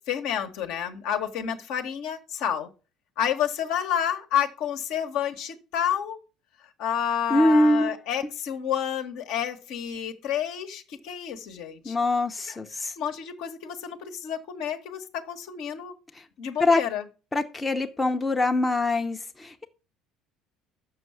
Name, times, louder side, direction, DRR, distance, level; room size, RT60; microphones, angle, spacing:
voice 1, 0.1-2.7 3.2-6.2 6.8-12.0 12.5-12.6 13.0-15.9 16.4-17.1, left 9 dB, 60° left, 1.0 m, -29 dB
voice 2, 7.3-7.9 11.8-12.9 16.6-16.8 17.3-19.7, left 2 dB, 15° left, 0.8 m, -23 dB
6.5 x 6.1 x 6.7 m
figure-of-eight pair, 60°, 0 cm